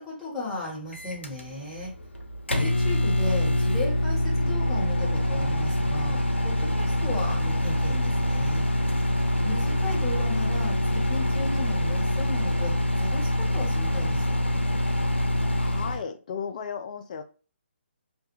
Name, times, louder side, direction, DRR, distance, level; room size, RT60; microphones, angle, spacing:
voice 1, 0.0-1.9 2.5-8.7 9.4-14.4, left 2 dB, ahead, -9 dB, 1.1 m, -35 dB
Microwave oven, 0.9-16.0, left 1 dB, 90° left, 0.5 m, -25 dB
voice 2, 15.6-17.2, left 6 dB, 40° left, 6 dB, 0.4 m, -34 dB
2.3 x 2.1 x 3.0 m, 0.37 s
figure-of-eight pair, 140°, 6 cm